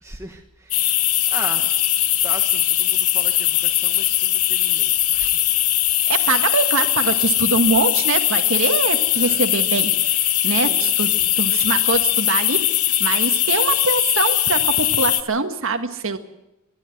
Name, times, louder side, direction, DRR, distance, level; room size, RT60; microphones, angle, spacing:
voice 1, 0.0-1.7 2.0-5.5 9.1-9.5 10.5-11.3, right 1 dB, 15° right, 3 dB, 1.2 m, -38 dB
sound 1, 0.7-15.2, left 13 dB, 90° left, 1.1 m, -20 dB
voice 2, 6.1-16.2, right 4 dB, 65° right, 7 dB, 1.7 m, -23 dB
23.5 x 12.0 x 9.2 m, 0.93 s
head